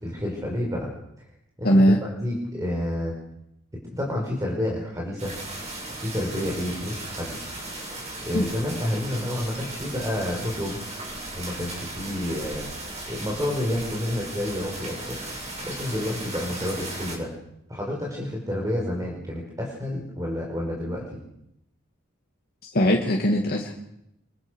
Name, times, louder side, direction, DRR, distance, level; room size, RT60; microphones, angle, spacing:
voice 1, 0.0-0.9 1.6-3.1 4.0-5.3 6.0-7.5 8.2-10.8 11.3-12.7 13.1-15.2 15.6-17.3 17.7-21.2, left 1 dB, 15° right, -2 dB, 5.3 m, -29 dB
voice 2, 1.6-2.0 8.3-8.5 22.6-23.7, equal, 50° left, 0 dB, 2.5 m, -20 dB
sound 1, 5.2-17.2, right 2 dB, 35° right, 7.6 m, -36 dB
26.5 x 24.0 x 6.6 m, 0.80 s
head